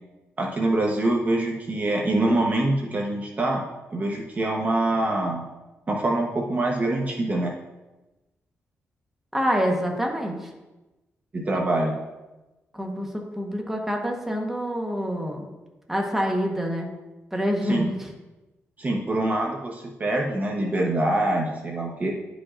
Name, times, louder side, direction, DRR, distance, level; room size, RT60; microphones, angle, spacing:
voice 1, 0.4-3.6 3.9-5.4 5.9-7.5 11.3-11.9 17.7-17.8 18.8-22.1, right 1 dB, 35° right, -1 dB, 1.0 m, -24 dB
voice 2, 9.3-10.5 12.7-15.5 15.9-16.9 17.3-18.1, equal, 5° right, 1 dB, 1.1 m, -26 dB
11.0 x 5.1 x 2.5 m, 1.1 s
cardioid pair, 105°, 5 cm